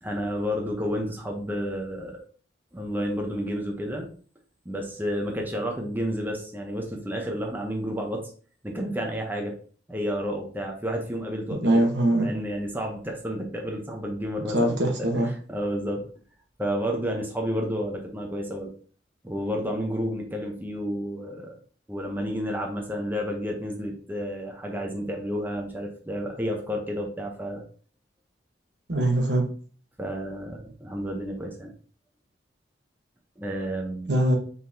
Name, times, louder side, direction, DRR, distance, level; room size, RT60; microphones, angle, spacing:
voice 1, 0.0-2.2 2.7-4.1 4.6-8.2 8.6-9.5 9.9-11.9 12.2-16.1 16.6-18.7 19.2-21.5 21.9-27.6 30.0-31.7 33.4-34.1, equal, 10° right, 1 dB, 0.8 m, -31 dB
voice 2, 11.6-12.3 14.5-15.3 28.9-29.5 34.1-34.4, right 1 dB, 75° right, 2 dB, 1.1 m, -22 dB
4.8 x 3.9 x 2.7 m, 0.43 s
head